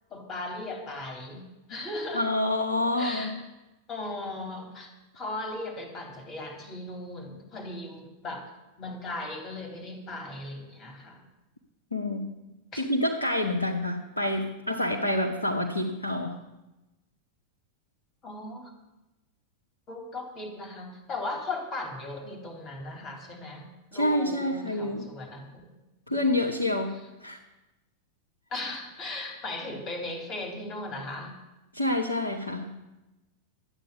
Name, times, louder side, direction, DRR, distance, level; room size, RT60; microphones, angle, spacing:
voice 1, 0.1-2.3 3.0-3.4 3.9-8.5 8.8-11.2 12.7-12.8 18.2-18.7 19.9-23.7 23.9-25.6 26.1-26.2 28.5-31.3, left 2 dB, 30° left, 3 dB, 3.2 m, -37 dB
voice 2, 2.1-3.3 11.9-12.3 12.7-16.4 23.9-25.1 26.1-26.9 27.2-27.4 31.7-32.7, left 1 dB, 85° left, 1 dB, 1.2 m, -27 dB
12.5 x 9.0 x 8.3 m, 1.0 s
figure-of-eight pair, 90°, 0 cm